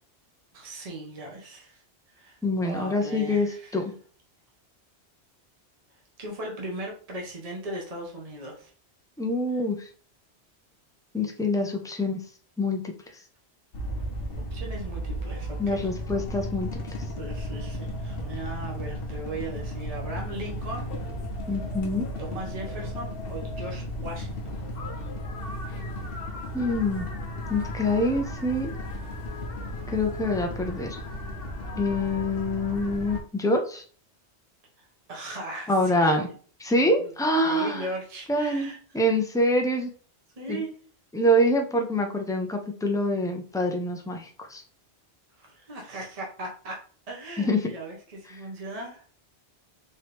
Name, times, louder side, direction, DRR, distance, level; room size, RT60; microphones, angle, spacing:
voice 1, 0.5-1.8 2.1-3.8 6.2-8.7 14.3-15.9 17.2-20.9 22.2-24.6 35.1-36.1 36.8-37.1 37.4-38.8 40.4-40.7 45.4-46.8 47.1-49.0, right 1 dB, 35° right, -1 dB, 1.1 m, -38 dB
voice 2, 2.4-3.9 9.2-9.9 11.1-12.2 12.6-12.8 15.6-16.7 21.5-22.1 26.5-27.1 27.5-28.7 29.9-31.0 31.8-33.8 35.7-36.3 36.6-37.9 38.3-39.9 40.5-40.6 41.1-44.6 47.4-47.6, left 1 dB, 5° left, 3 dB, 0.4 m, -25 dB
sound 1, 13.7-33.2, equal, 60° left, 1.1 m, -34 dB
4.4 x 3.0 x 3.4 m, 0.43 s
omnidirectional pair, 1.1 m